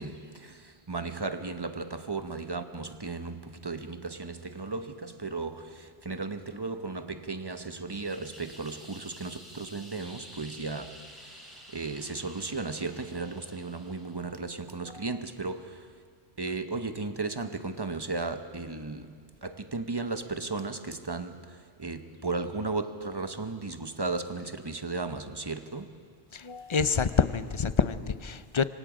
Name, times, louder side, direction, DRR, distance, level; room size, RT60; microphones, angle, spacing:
voice 1, 0.0-15.9 16.4-26.1, right 3 dB, 25° right, 0.9 m, -35 dB
sound 1, 7.9-14.2, equal, ahead, 6.0 m, -50 dB
voice 2, 26.3-28.7, left 5 dB, 35° left, 0.5 m, -27 dB
25.5 x 25.0 x 5.1 m
omnidirectional pair, 1.1 m